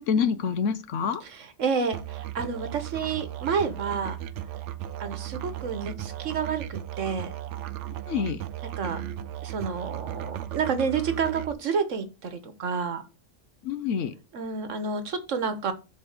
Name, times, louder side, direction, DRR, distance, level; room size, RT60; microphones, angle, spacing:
voice 1, 0.0-1.2 8.1-8.4 13.6-14.1, left 6 dB, 80° left, 1.1 m, -26 dB
voice 2, 1.2-4.2 5.0-7.3 8.8-9.0 9.4-13.0 14.3-15.7, right 5 dB, 90° right, 1.5 m, -29 dB
Musical instrument, 1.9-11.5, right 12 dB, 75° right, 0.9 m, -36 dB
7.3 x 4.2 x 6.6 m
omnidirectional pair, 1.3 m